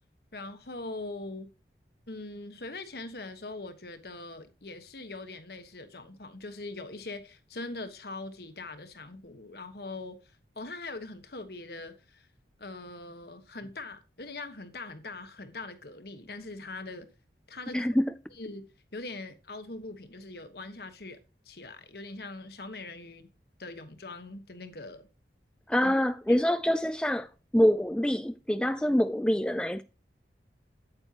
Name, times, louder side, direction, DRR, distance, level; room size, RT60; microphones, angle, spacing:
voice 1, 0.3-1.5 2.1-10.2 10.5-12.3 12.6-17.1 17.5-17.9 18.3-21.2 21.4-23.3 23.6-25.1 25.8-25.9 26.3-26.4, left 2 dB, 60° left, 1.3 m, -42 dB
voice 2, 17.7-18.1 25.7-27.3 27.5-29.8, equal, 5° left, 0.4 m, -25 dB
9.0 x 8.8 x 3.0 m
head